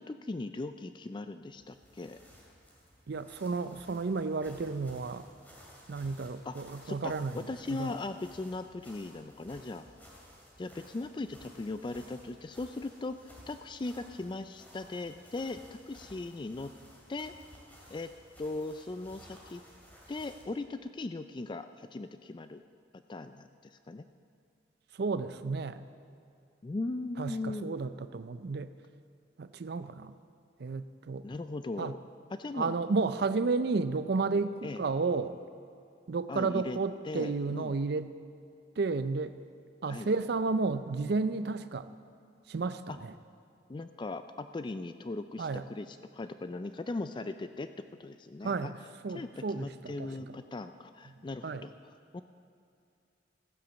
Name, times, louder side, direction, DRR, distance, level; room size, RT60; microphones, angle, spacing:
voice 1, 0.0-2.2 6.5-6.6 6.8-9.8 10.6-13.2 13.5-15.6 15.9-16.7 17.1-17.3 17.9-18.1 18.4-19.6 20.1-22.6 23.1-24.1 26.6-27.8 31.2-32.0 32.3-32.8 34.6-34.8 36.3-36.8 37.0-37.8 39.9-40.1 42.9-43.0 43.7-48.7 49.1-51.7 52.1-52.2, left 2 dB, 25° left, 10 dB, 0.3 m, -38 dB
sound 1, 1.5-20.6, equal, 10° left, 2.6 m, -56 dB
voice 2, 3.1-5.3 5.9-7.9 24.9-25.9 27.2-28.7 29.4-30.1 30.6-31.3 31.8-31.9 32.5-35.4 36.1-38.1 38.8-39.4 39.8-41.9 42.5-43.1 45.4-45.6 48.4-48.8 49.0-50.4 51.4-51.7, right 4 dB, 60° right, 12 dB, 0.5 m, -32 dB
14.5 x 10.5 x 7.0 m, 2.5 s
head